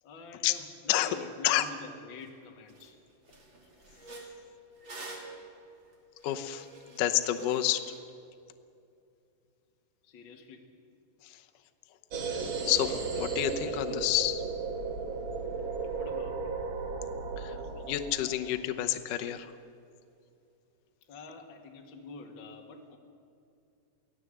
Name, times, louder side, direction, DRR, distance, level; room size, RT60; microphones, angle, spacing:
voice 1, 0.0-3.0 10.0-10.7 15.9-16.5 21.1-23.0, left 3 dB, 40° left, 2 dB, 1.8 m, -47 dB
sound 1, 2.2-2.3 2.7-2.9 3.2-8.0, right 2 dB, 30° right, 2.8 m, -48 dB
voice 2, 6.2-7.8 11.2-11.4 12.3-14.4 17.4-19.5, left 13 dB, 80° left, 6 dB, 1.9 m, -29 dB
sound 2, 12.1-18.7, right 4 dB, 60° right, 1.3 m, -35 dB
23.5 x 16.0 x 7.9 m, 2.5 s
omnidirectional pair, 5.0 m